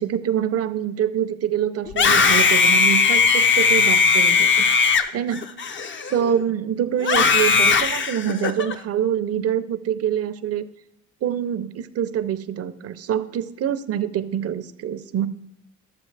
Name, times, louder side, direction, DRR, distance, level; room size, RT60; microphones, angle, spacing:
voice 1, 0.0-4.7 5.1-5.4 6.1-10.6 11.2-15.3, right 9 dB, 50° right, 12 dB, 0.7 m, -25 dB
Screaming, 1.9-6.4 7.0-8.7, left 5 dB, 40° left, 0.6 m, -18 dB
12.5 x 6.9 x 3.3 m, 0.80 s
cardioid pair, 90°, 30 cm